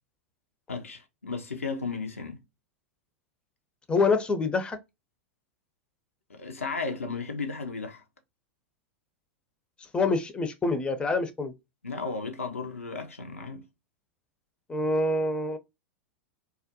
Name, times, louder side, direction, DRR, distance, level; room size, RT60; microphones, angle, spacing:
voice 1, 0.7-2.4 6.3-8.0 11.8-13.6, left 4 dB, 85° left, 0.5 m, -34 dB
voice 2, 3.9-4.8 9.9-11.5 14.7-15.6, left 3 dB, 15° left, 0.5 m, -26 dB
2.3 x 2.0 x 2.6 m
figure-of-eight pair, 95°, 7 cm